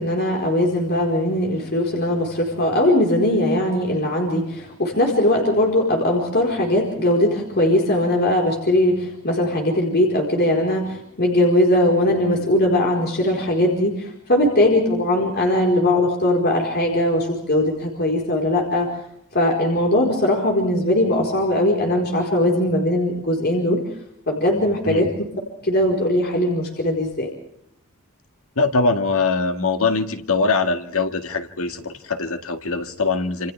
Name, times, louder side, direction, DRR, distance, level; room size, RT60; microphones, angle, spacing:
voice 1, 0.0-18.9 19.3-23.8 24.3-25.1 25.6-27.3, left 1 dB, 45° left, 0 dB, 4.6 m, -20 dB
voice 2, 28.6-33.5, left 3 dB, 65° left, 6 dB, 2.1 m, -22 dB
28.0 x 28.0 x 3.5 m, 0.72 s
head